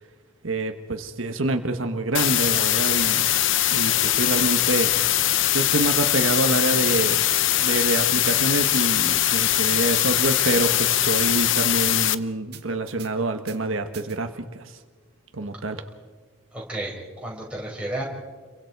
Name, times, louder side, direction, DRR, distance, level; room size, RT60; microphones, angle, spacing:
voice 1, 0.4-3.3 3.7-4.9 5.5-7.3 7.6-14.8 15.3-15.8, right 2 dB, 75° right, 6 dB, 1.3 m, -26 dB
sound 1, 2.1-12.1, left 13 dB, 65° left, 0.7 m, -21 dB
sound 2, 6.8-7.0 7.3-7.4 7.8-7.9 8.3-8.4 8.7-9.3 9.7-9.8 10.2-10.7 11.1-11.2 11.6-11.7 12.0-12.2 12.5-13.1 13.5-13.6 13.9-14.2, right 11 dB, 50° right, 2.0 m, -43 dB
voice 2, 16.5-18.0, right 1 dB, 5° right, -4 dB, 5.5 m, -32 dB
30.0 x 23.5 x 4.7 m, 1.5 s
head